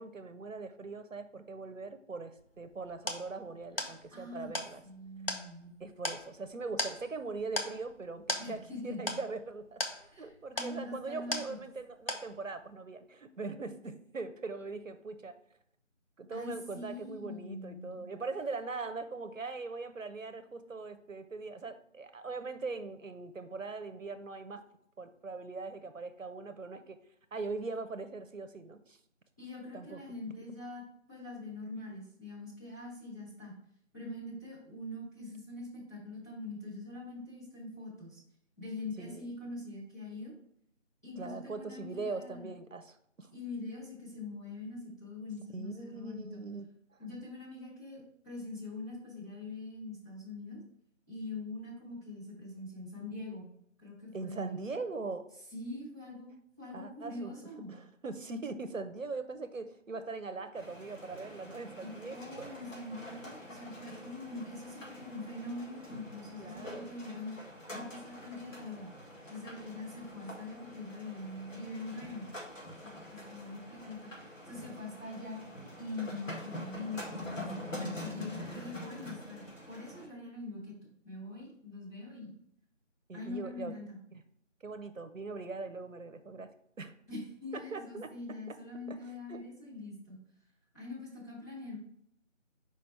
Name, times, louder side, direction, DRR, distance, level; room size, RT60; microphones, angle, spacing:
voice 1, 0.0-4.8 5.8-15.3 16.2-24.6 25.0-27.0 27.3-29.0 29.7-30.0 39.0-39.3 41.2-43.3 45.5-47.0 54.1-55.2 56.7-57.3 57.7-62.5 66.4-66.9 83.1-83.7 84.1-84.2 84.6-86.5 86.8-86.9 87.5-88.1 88.5-88.6 88.9-89.0 89.3-89.4, right 3 dB, 75° right, 10 dB, 0.8 m, -41 dB
sound 1, 2.4-11.8 12.1-12.7, left 1 dB, 50° left, 0.8 m, -39 dB
voice 2, 3.8-4.5 4.8-5.7 8.4-9.2 10.1-11.6 16.3-18.1 29.4-30.8 31.1-33.5 33.9-38.2 38.6-40.3 41.0-42.5 43.3-46.4 47.0-50.6 51.1-53.5 53.8-54.6 55.5-56.3 56.6-57.8 62.0-67.3 67.7-68.9 69.3-72.3 72.8-74.1 74.4-75.4 75.8-77.6 78.0-80.7 81.0-82.3 83.1-84.0 87.1-90.2 90.7-91.8, left 2 dB, 15° left, -11 dB, 1.4 m, -43 dB
sound 2, 60.6-80.1, left 1 dB, 80° left, 2.0 m, -46 dB
5.8 x 5.1 x 3.3 m, 0.69 s
figure-of-eight pair, 170°, 39 cm